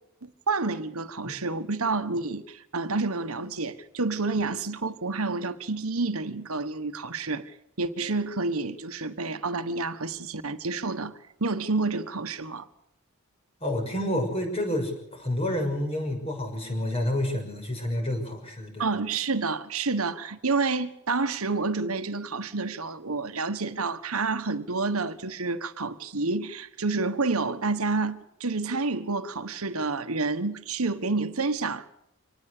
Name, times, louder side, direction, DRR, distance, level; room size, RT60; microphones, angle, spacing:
voice 1, 0.2-7.4 7.8-12.7 18.8-31.9, right 3 dB, 85° right, 1.5 m, -29 dB
voice 2, 13.6-18.9, left 1 dB, 30° left, 6.3 m, -29 dB
25.5 x 19.0 x 6.8 m
head